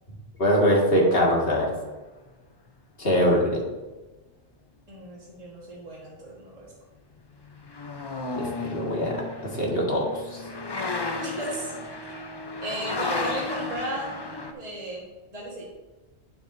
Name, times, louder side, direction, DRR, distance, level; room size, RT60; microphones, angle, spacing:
voice 1, 0.4-1.7 3.0-3.6 8.4-9.2 9.5-10.0 10.3-10.4, equal, 60° left, -2 dB, 2.0 m, -22 dB
voice 2, 4.9-6.7 11.2-11.7 12.1-12.3 12.6-15.0 15.3-15.6, right 1 dB, 35° right, -5 dB, 1.6 m, -35 dB
sound 1, 7.5-14.5, left 3 dB, 30° left, 0.5 m, -33 dB
9.2 x 7.6 x 2.6 m, 1.2 s
omnidirectional pair, 1.2 m